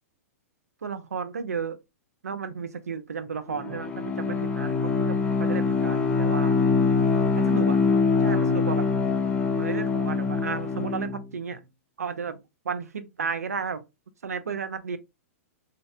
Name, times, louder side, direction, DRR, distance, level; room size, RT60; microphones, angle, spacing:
voice 1, 0.8-1.8 2.2-6.5 7.4-7.8 8.2-8.9 9.6-11.6 12.0-12.4 12.6-13.8 14.2-15.0, right 6 dB, 90° right, 0.4 m, -33 dB
Bowed string instrument, 3.5-11.2, left 4 dB, 15° left, 0.6 m, -24 dB
2.6 x 2.0 x 2.4 m
hypercardioid pair, 115°, 8 cm